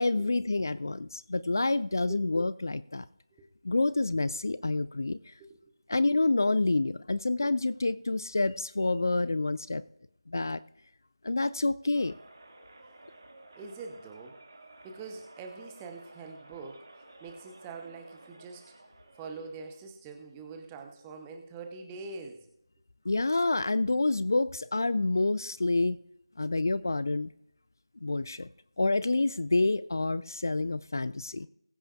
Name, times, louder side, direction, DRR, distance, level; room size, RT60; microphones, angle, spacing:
voice 1, 0.0-3.0 3.6-5.3 5.9-9.8 10.3-10.6 11.2-12.2 23.1-26.0 26.4-27.3 28.0-28.5 28.8-31.5, left 2 dB, 45° left, 17 dB, 0.4 m, -28 dB
voice 2, 5.4-5.7 13.5-14.4 14.8-16.9 17.2-18.8 19.2-22.5, right 4 dB, 10° right, 5 dB, 0.8 m, -44 dB
sound 1, 11.9-19.9, right 2 dB, 40° right, 2.3 m, -53 dB
21.0 x 8.7 x 2.5 m, 0.81 s
figure-of-eight pair, 165°, 3 cm